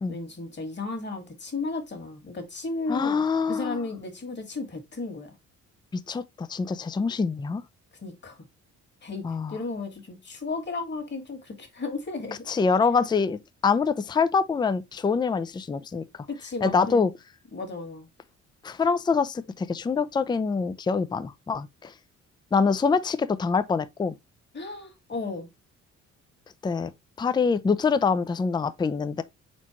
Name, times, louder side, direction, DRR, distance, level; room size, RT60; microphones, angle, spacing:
voice 1, 0.1-3.2 3.5-5.3 8.0-8.4 9.0-12.4 16.4-17.1 17.5-18.1 24.5-25.5, left 3 dB, 35° left, 1.7 m, -34 dB
voice 2, 2.9-3.9 5.9-7.6 9.2-9.6 12.5-16.0 16.6-17.1 18.6-21.9 22.5-24.1 26.6-26.9 27.2-29.2, left 5 dB, 15° left, 0.4 m, -25 dB
4.5 x 4.1 x 2.9 m
cardioid pair, 90°, 30 cm